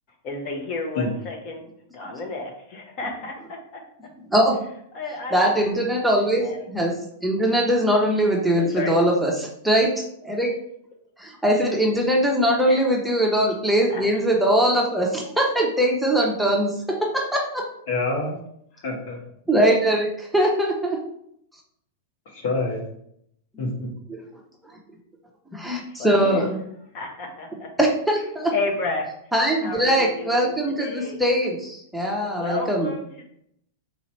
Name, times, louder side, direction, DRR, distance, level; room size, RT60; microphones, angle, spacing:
voice 1, 0.2-1.7 1.9-3.8 4.9-5.8 6.2-6.6 8.5-9.0 12.7-12.8 13.9-14.0 18.7-18.8 25.9-26.4 26.9-27.7 28.5-29.1 29.6-31.2 32.3-33.2, left 3 dB, 45° left, 2 dB, 1.1 m, -32 dB
voice 2, 5.3-6.9 7.2-10.5 11.2-17.6 19.5-21.0 24.1-24.2 25.5-26.6 27.8-28.5 29.3-32.9, right 1 dB, ahead, -2 dB, 0.9 m, -21 dB
voice 3, 17.9-18.4 18.8-19.2 22.3-22.8 23.6-23.9, left 2 dB, 60° left, -1 dB, 1.3 m, -26 dB
4.0 x 2.8 x 4.4 m, 0.73 s
hypercardioid pair, 105°, 0 cm